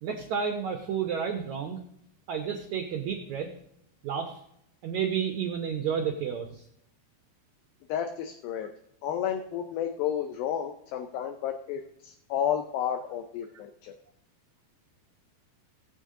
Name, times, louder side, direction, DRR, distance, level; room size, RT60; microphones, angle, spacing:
voice 1, 0.0-1.8 2.3-3.5 4.0-4.4 4.8-6.7, right 7 dB, 90° right, 3 dB, 1.6 m, -31 dB
voice 2, 7.9-8.7 9.0-14.0, left 9 dB, 80° left, 6 dB, 2.3 m, -31 dB
18.0 x 7.3 x 3.7 m, 0.75 s
omnidirectional pair, 4.6 m